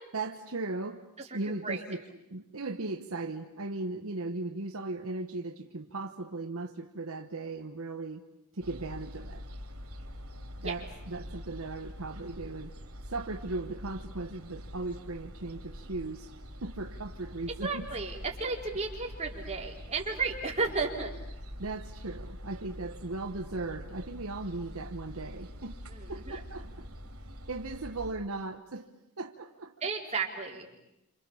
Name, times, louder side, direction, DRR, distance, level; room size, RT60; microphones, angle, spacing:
voice 1, 0.1-1.0 1.3-2.0 2.3-8.3 8.5-9.4 10.6-12.7 13.1-16.3 16.6-17.9 21.6-25.8 26.1-26.9 27.5-28.9 29.2-29.7, right 2 dB, 70° right, 6 dB, 1.2 m, -37 dB
sound 1, 8.6-28.1, equal, 85° right, 4.0 m, -45 dB
voice 2, 17.6-21.1 25.9-26.4 29.8-30.7, right 4 dB, 30° right, -1 dB, 4.2 m, -33 dB
29.0 x 27.0 x 7.2 m, 0.88 s
head